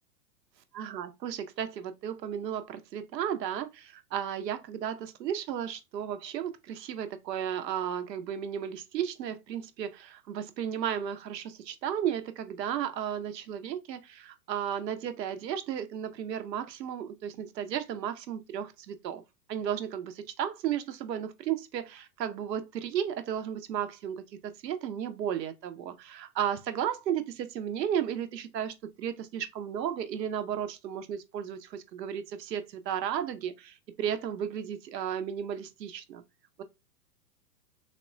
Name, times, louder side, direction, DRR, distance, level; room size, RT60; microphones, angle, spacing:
voice 1, 0.7-19.2 19.5-36.2 36.6-36.7, right 9 dB, 85° right, 0.6 m, -34 dB
3.5 x 2.1 x 2.3 m
hypercardioid pair, 120°, 49 cm